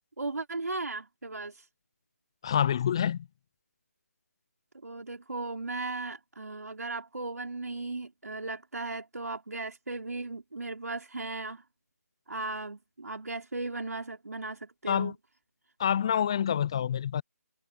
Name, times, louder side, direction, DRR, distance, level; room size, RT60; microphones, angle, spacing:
voice 1, 0.2-1.6 4.8-11.6 12.3-15.1, right 3 dB, 75° right, 2.9 m, -36 dB
voice 2, 2.4-3.2 14.9-15.2 15.8-17.2, left 9 dB, 20° left, 0.3 m, -27 dB
figure-of-eight pair, 160°, 9 cm